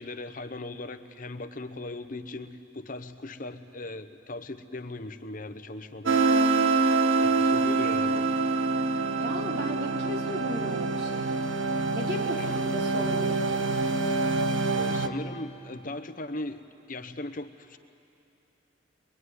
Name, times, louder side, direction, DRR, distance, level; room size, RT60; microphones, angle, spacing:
voice 1, 0.0-6.4 6.7-8.3 12.4-12.6 14.7-17.8, left 2 dB, 45° left, 9 dB, 0.9 m, -39 dB
sound 1, 6.1-15.1, right 3 dB, 85° right, 1.1 m, -25 dB
voice 2, 9.1-11.4 11.9-13.8, equal, 60° right, 0 dB, 3.2 m, -35 dB
24.0 x 22.5 x 9.7 m, 2.7 s
head